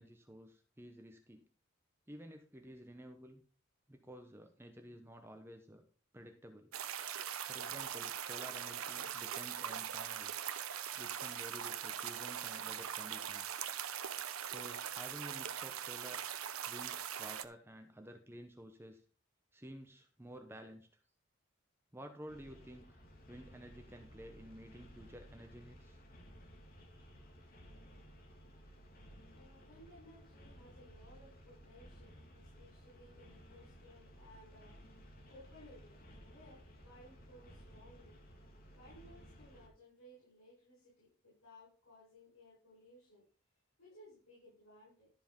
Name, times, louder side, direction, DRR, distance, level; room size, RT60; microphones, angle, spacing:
voice 1, 0.0-1.4 2.1-3.4 3.9-5.8 6.1-6.7 7.5-10.3 10.9-13.5 14.4-16.2 16.7-19.0 19.5-20.9 21.9-23.0 23.3-26.0, equal, 10° right, 5 dB, 0.8 m, -52 dB
sound 1, 6.7-17.5, right 9 dB, 90° right, 0.8 m, -41 dB
sound 2, 22.3-39.7, equal, 45° left, 1.8 m, -57 dB
voice 2, 29.3-38.2 38.7-43.2 43.8-45.1, equal, 85° left, -6 dB, 6.6 m, -60 dB
12.5 x 5.1 x 5.2 m, 0.39 s
head